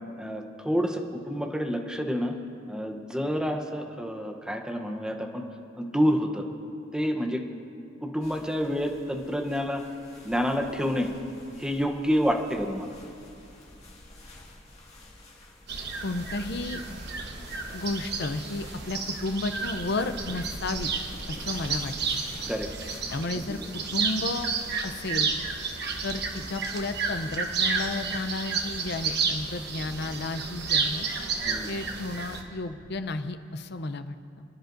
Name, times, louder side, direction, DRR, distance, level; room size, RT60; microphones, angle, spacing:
voice 1, 0.2-2.3 2.7-5.4 5.8-6.4 6.9-7.4 8.0-9.8 10.2-11.1 11.6-12.9 22.5-22.7 23.4-23.5 31.5-31.7, equal, 5° right, 2 dB, 0.8 m, -28 dB
sound 1, 8.2-23.0, left 1 dB, 35° left, 2.0 m, -49 dB
sound 2, 15.7-32.4, right 5 dB, 60° right, 1.1 m, -31 dB
voice 2, 16.0-16.8 17.7-20.9 21.3-22.2 23.1-23.6 23.9-24.5 24.8-25.3 26.0-31.1 31.7-34.4, left 2 dB, 60° left, 10 dB, 0.6 m, -32 dB
29.5 x 10.5 x 2.6 m, 2.6 s
head